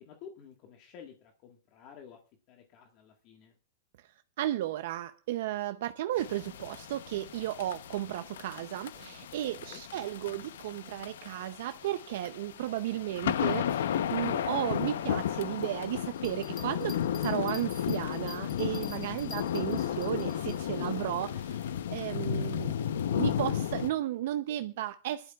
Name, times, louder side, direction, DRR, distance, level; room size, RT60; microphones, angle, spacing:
voice 1, 0.0-2.2 2.5-3.5 9.6-9.8 19.1-19.4, left 7 dB, 40° left, 3 dB, 1.6 m, -52 dB
voice 2, 4.4-22.7 23.1-25.3, right 13 dB, 65° right, 10 dB, 0.6 m, -34 dB
sound 1, 6.2-23.9, left 9 dB, 85° left, 0.7 m, -34 dB
sound 2, 16.2-20.6, left 4 dB, 15° left, 1.4 m, -48 dB
25.0 x 11.5 x 2.4 m, 0.33 s
supercardioid pair, 155°, 0 cm